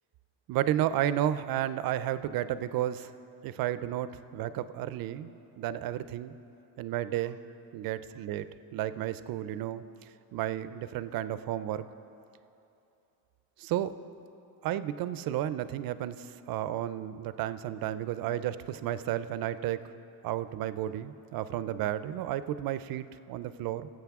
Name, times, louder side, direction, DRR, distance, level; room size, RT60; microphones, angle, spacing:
voice 1, 0.5-3.1 3.4-6.3 6.8-7.4 7.7-8.5 8.7-9.8 10.3-11.8 13.6-13.9 14.6-19.8 20.2-23.9, right 12 dB, 55° right, 14 dB, 0.5 m, -32 dB
20.0 x 7.9 x 3.6 m, 2.8 s
cardioid pair, 135°, 43 cm